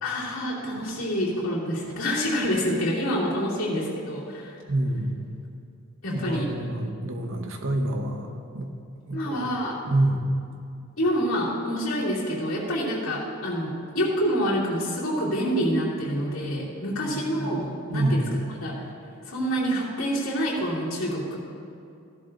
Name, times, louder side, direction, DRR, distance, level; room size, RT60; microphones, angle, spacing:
voice 1, 0.0-4.6 6.0-6.5 9.1-9.7 11.0-18.8 19.3-21.4, equal, 65° left, -7 dB, 3.0 m, -27 dB
voice 2, 4.7-5.3 6.1-8.3 8.5-8.7 9.1-9.5 9.9-10.3 17.9-18.2, right 1 dB, 60° right, 3 dB, 1.1 m, -26 dB
15.5 x 11.5 x 2.6 m, 2.5 s
head